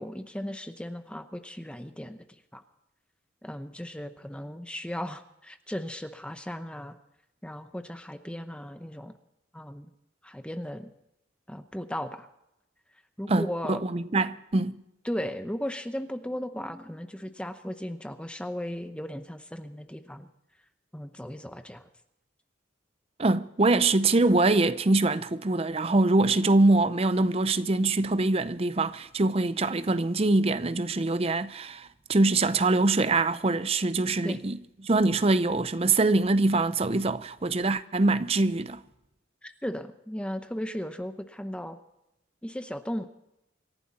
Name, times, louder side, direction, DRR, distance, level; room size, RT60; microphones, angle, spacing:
voice 1, 0.0-2.3 2.5-2.6 3.4-7.0 7.4-9.1 9.5-9.9 10.2-10.9 11.5-12.3 13.2-13.8 15.0-20.3 20.9-21.9 34.2-34.5 39.4-41.8 42.4-43.1, equal, 5° left, 0.7 m, -36 dB
voice 2, 13.3-14.8 23.2-34.6 34.8-38.8, right 2 dB, 30° right, 0.6 m, -24 dB
27.0 x 11.5 x 4.1 m
head